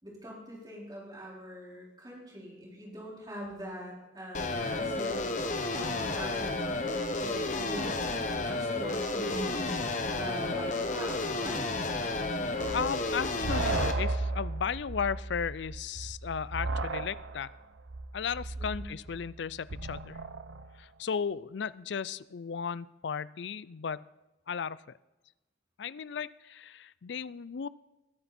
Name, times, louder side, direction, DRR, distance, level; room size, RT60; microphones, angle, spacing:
voice 1, 0.0-11.7 18.6-18.9, equal, 20° right, -4 dB, 4.6 m, -43 dB
sound 1, 4.3-13.9, left 2 dB, 40° left, 1.3 m, -32 dB
sound 2, 12.6-20.7, right 3 dB, 80° right, 0.8 m, -35 dB
voice 2, 12.7-17.5 18.1-20.2 20.8-24.1 24.5-24.8 25.8-27.7, left 6 dB, 65° left, 19 dB, 0.4 m, -35 dB
20.5 x 10.5 x 4.3 m, 1.1 s
head